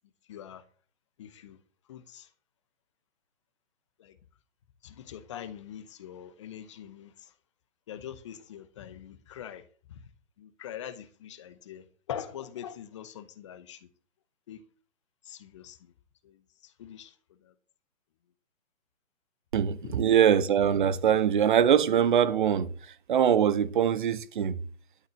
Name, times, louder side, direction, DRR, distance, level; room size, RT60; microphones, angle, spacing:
voice 1, 0.3-0.6 1.2-1.6 1.9-2.3 4.0-4.1 4.8-7.3 7.9-9.6 9.9-10.0 10.4-13.9 14.5-14.6 15.2-15.9 16.2-17.1 17.4-17.5 19.8-19.9, left 9 dB, 25° left, 0.8 m, -43 dB
voice 2, 19.5-24.6, right 9 dB, 40° right, 0.9 m, -23 dB
12.5 x 6.5 x 6.6 m
figure-of-eight pair, 140°, 40 cm